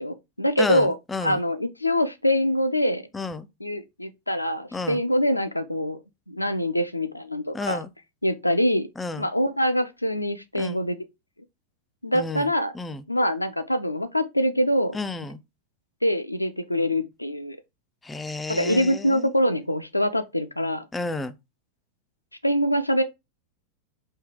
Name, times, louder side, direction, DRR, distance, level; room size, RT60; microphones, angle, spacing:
voice 1, 0.0-1.0 1.2-3.0 3.6-6.0 6.3-7.8 8.2-8.9 9.2-11.0 12.0-12.7 13.1-15.0 16.0-17.6 18.5-20.9 22.4-23.0, equal, 85° left, 0.4 m, -24 dB
voice 2, 0.6-1.4 3.1-3.5 4.7-5.0 7.5-7.9 9.0-9.3 10.5-10.8 12.1-13.0 14.9-15.4 18.0-19.3 20.9-21.3, left 3 dB, 10° left, 0.4 m, -31 dB
4.6 x 2.8 x 3.5 m
figure-of-eight pair, 90°, 0 cm